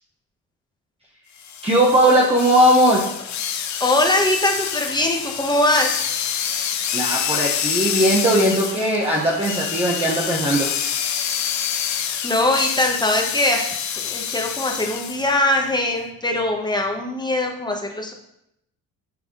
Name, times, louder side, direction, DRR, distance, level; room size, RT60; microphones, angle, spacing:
sound 1, 1.4-15.4, left 8 dB, 55° left, 0.7 m, -27 dB
voice 1, 1.6-3.1 6.9-10.7, right 1 dB, 15° right, -4 dB, 1.1 m, -18 dB
voice 2, 3.8-6.0 12.2-13.7 14.0-18.1, left 1 dB, 10° left, 2 dB, 1.1 m, -21 dB
8.6 x 3.4 x 3.8 m, 0.79 s
cardioid pair, 90°, 34 cm